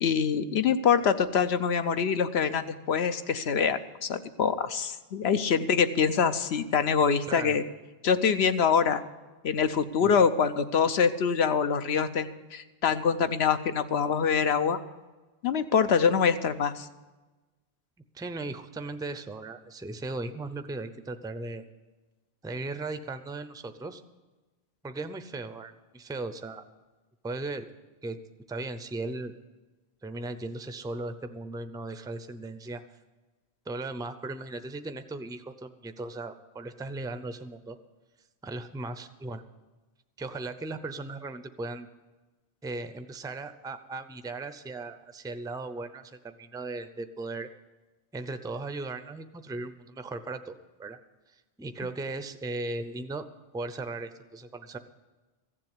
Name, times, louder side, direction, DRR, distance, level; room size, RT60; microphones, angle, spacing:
voice 1, 0.0-7.6 8.0-9.0 9.4-14.8 15.4-16.9, left 6 dB, 75° left, 10 dB, 1.0 m, -25 dB
voice 2, 7.3-7.6 10.0-10.1 18.1-21.6 22.4-24.0 24.8-26.6 27.2-27.7 28.0-28.2 28.5-29.3 30.0-32.8 33.7-37.8 38.4-39.4 40.2-41.9 42.6-47.5 48.1-51.0 51.3-53.2 53.5-54.8, right 2 dB, 5° right, 10 dB, 0.5 m, -37 dB
15.0 x 7.6 x 9.6 m, 1.2 s
omnidirectional pair, 1.1 m